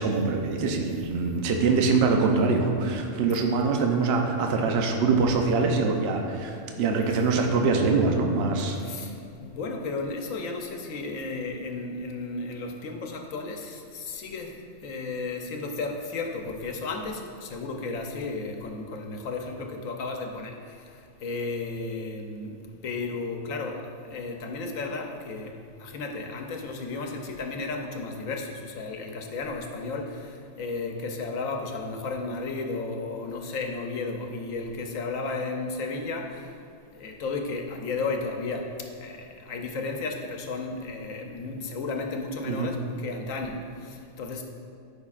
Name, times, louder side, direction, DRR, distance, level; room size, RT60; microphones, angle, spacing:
voice 1, 0.0-8.8 42.5-42.7, right 4 dB, 60° right, 3 dB, 0.9 m, -24 dB
voice 2, 8.8-22.5 22.8-36.5 36.9-38.7 39.0-44.4, left 3 dB, 90° left, 3 dB, 1.2 m, -34 dB
12.5 x 5.4 x 2.4 m, 2.3 s
omnidirectional pair, 1.4 m